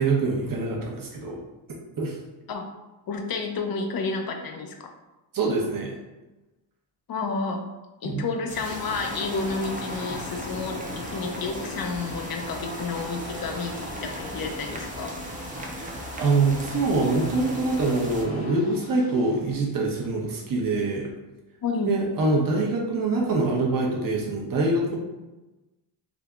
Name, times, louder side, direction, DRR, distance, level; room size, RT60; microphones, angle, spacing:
voice 1, 0.0-1.4 2.0-2.2 5.3-5.9 8.0-8.3 15.8-21.1 21.8-25.0, right 3 dB, 45° right, -1 dB, 0.9 m, -24 dB
voice 2, 3.1-4.9 7.1-7.7 8.0-15.1 21.6-21.9, left 4 dB, 45° left, 4 dB, 0.6 m, -30 dB
sound 1, 8.5-18.2, right 1 dB, 15° right, 0.6 m, -38 dB
sound 2, 8.6-19.9, left 2 dB, 85° left, 1.2 m, -39 dB
3.8 x 2.7 x 2.4 m, 1.1 s
cardioid pair, 75°, 49 cm